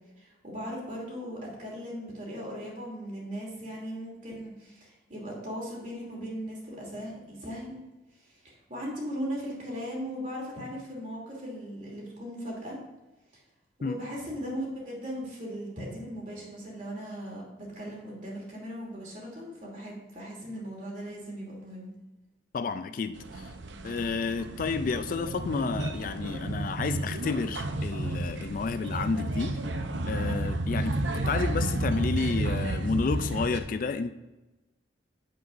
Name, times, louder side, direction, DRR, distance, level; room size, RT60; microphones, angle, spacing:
voice 1, 0.2-7.8 8.2-12.8 13.3-13.4 13.8-21.9, equal, 45° right, -3 dB, 2.8 m, -38 dB
voice 2, 22.5-23.5 23.8-29.6 30.1-34.1, left 4 dB, 45° left, 11 dB, 0.3 m, -31 dB
sound 1, 23.2-33.6, right 2 dB, 75° right, 0.7 m, -32 dB
8.7 x 7.7 x 2.6 m, 1.1 s
head